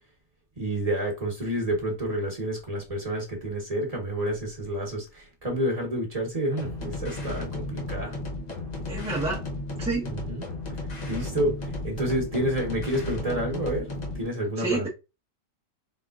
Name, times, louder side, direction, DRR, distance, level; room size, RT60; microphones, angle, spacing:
voice 1, 0.6-8.2 10.0-10.5 10.8-14.9, right 1 dB, 30° right, 1.2 m, -29 dB
sound 1, 6.6-14.3, left 2 dB, 40° left, 0.6 m, -34 dB
voice 2, 8.9-9.4 9.8-10.1 14.6-14.9, right 3 dB, 5° right, 0.8 m, -28 dB
4.3 x 3.6 x 2.4 m
omnidirectional pair, 1.4 m